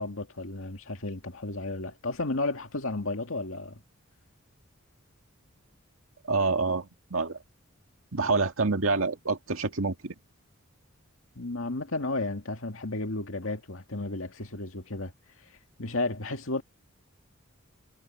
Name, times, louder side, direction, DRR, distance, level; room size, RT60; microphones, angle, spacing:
voice 1, 0.0-3.8 11.4-15.1 15.8-16.6, left 2 dB, 70° left, 2.1 m, -33 dB
voice 2, 6.3-7.4 8.1-10.1, right 3 dB, 75° right, 1.9 m, -27 dB
head